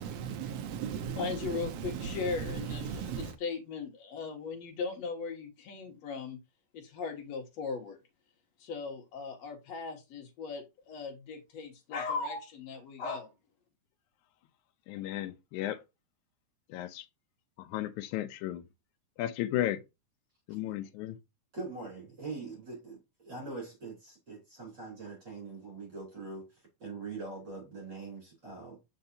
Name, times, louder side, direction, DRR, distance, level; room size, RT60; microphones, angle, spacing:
voice 1, 0.0-3.3, right 7 dB, 80° right, 1.4 m, -37 dB
voice 2, 1.2-6.4 6.7-8.0 8.6-13.3, left 4 dB, 60° left, 2.4 m, -38 dB
voice 3, 14.9-15.8 16.7-17.1 17.6-18.6 19.2-19.8 20.5-21.2, left 13 dB, 80° left, 2.0 m, -34 dB
voice 4, 21.5-26.5 26.8-28.8, right 3 dB, 35° right, 4.0 m, -42 dB
6.5 x 5.4 x 2.7 m
omnidirectional pair, 3.6 m